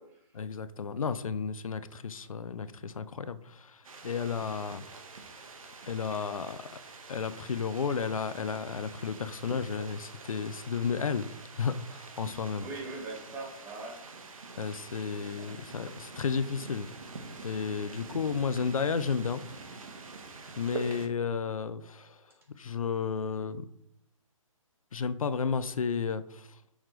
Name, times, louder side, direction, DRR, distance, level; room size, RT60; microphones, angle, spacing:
voice 1, 0.3-4.9 5.9-6.6 7.1-11.3 11.6-12.7 14.6-16.9 17.4-19.4 20.6-22.2 22.6-23.6 24.9-26.5, left 6 dB, 80° left, 13 dB, 0.7 m, -32 dB
sound 1, 3.8-21.1, right 3 dB, 75° right, 1.5 m, -46 dB
voice 2, 12.6-14.0 15.4-15.7 20.7-21.0, right 3 dB, 15° right, 0 dB, 1.7 m, -42 dB
8.8 x 6.5 x 3.3 m, 0.76 s
hypercardioid pair, 155°, 18 cm